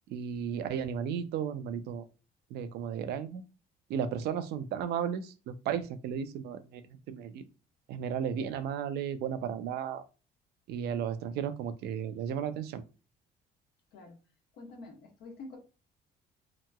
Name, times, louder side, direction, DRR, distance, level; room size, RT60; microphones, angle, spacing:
voice 1, 0.1-2.0 2.5-3.4 3.9-6.8 7.1-7.4 7.9-10.0 10.7-12.8, right 8 dB, 75° right, 11 dB, 0.5 m, -34 dB
voice 2, 14.6-15.6, left 3 dB, 75° left, 2 dB, 1.1 m, -47 dB
2.9 x 2.8 x 2.2 m, 0.33 s
cardioid pair, 110°, 17 cm